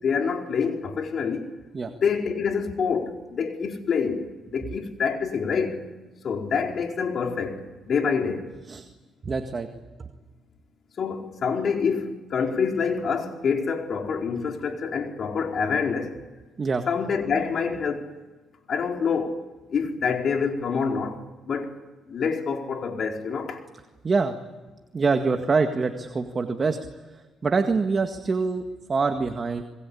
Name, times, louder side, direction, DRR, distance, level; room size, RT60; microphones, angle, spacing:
voice 1, 0.0-1.5 2.0-5.8 6.2-8.5 11.0-16.1 16.9-18.1 18.7-19.4 19.7-21.2 21.5-21.7 22.1-23.6, left 5 dB, 55° left, 4.5 m, -26 dB
voice 2, 9.2-9.7 16.6-16.9 24.0-24.4 24.9-26.8 27.0-29.6, right 4 dB, 35° right, 1.9 m, -25 dB
28.0 x 21.5 x 8.6 m
cardioid pair, 90°, 0 cm